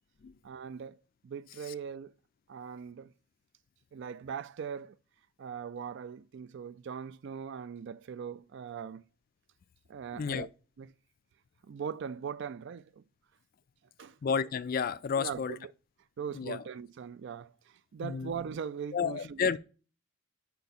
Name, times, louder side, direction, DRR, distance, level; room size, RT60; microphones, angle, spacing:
voice 1, 0.4-1.0 1.2-2.1 2.5-3.1 3.9-5.0 5.4-9.0 9.9-10.5 10.8-10.9 11.7-13.0 14.0-14.2 15.2-15.7 16.2-19.6, right 7 dB, 55° right, 0.3 m, -40 dB
voice 2, 10.1-10.5 14.2-15.6 16.3-16.6 18.0-18.3 18.9-19.6, left 6 dB, 40° left, 0.3 m, -31 dB
5.6 x 4.6 x 4.1 m
head